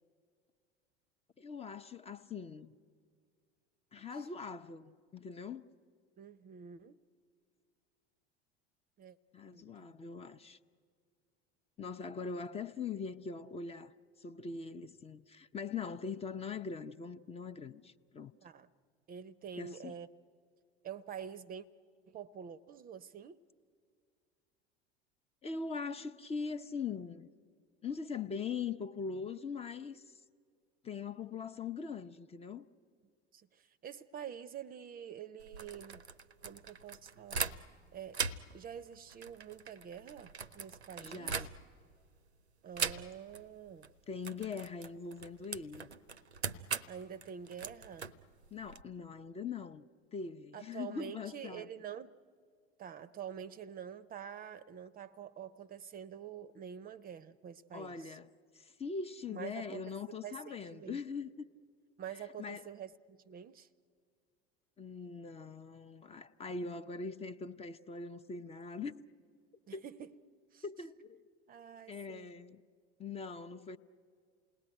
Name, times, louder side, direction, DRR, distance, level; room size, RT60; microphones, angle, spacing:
voice 1, 1.4-2.8 3.9-5.6 9.3-10.6 11.8-13.9 14.2-18.3 19.6-19.9 25.4-27.3 27.8-30.2 30.8-32.7 41.0-41.5 44.1-45.9 48.5-51.7 57.7-58.3 58.5-61.5 62.4-62.7 64.8-69.0 69.7-69.8 70.6-71.2 71.9-72.6 73.0-73.8, left 5 dB, 20° left, 0.7 m, -42 dB
voice 2, 6.2-7.0 9.0-9.2 9.5-10.0 18.4-18.7 19.1-20.1 20.8-21.7 22.1-23.4 33.3-36.0 36.4-37.5 37.9-38.2 38.5-41.5 42.6-43.9 46.9-48.1 50.5-52.2 52.8-58.2 59.3-61.0 62.0-63.7 69.7-70.2 70.5-70.6 71.5-72.3, right 8 dB, 25° right, 0.7 m, -47 dB
sound 1, 35.4-37.8 38.1-41.9 42.7-43.4 43.7-43.9 44.2-48.8, right 5 dB, 85° right, 0.8 m, -41 dB
28.5 x 19.0 x 10.0 m
figure-of-eight pair, 75°, 32 cm